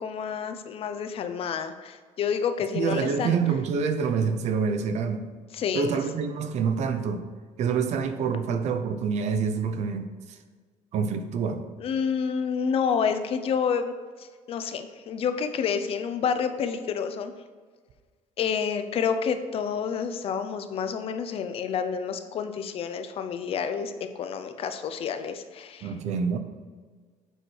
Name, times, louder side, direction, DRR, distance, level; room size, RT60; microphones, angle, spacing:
voice 1, 0.0-3.4 5.5-6.0 11.8-13.9 14.2-17.3 18.4-25.9, left 6 dB, 45° left, 9 dB, 0.5 m, -29 dB
voice 2, 2.7-5.2 5.7-7.2 7.6-10.4 10.9-11.6 25.8-26.4, right 6 dB, 55° right, 8 dB, 0.7 m, -27 dB
7.8 x 4.6 x 4.5 m, 1.5 s
cardioid pair, 170°, 14 cm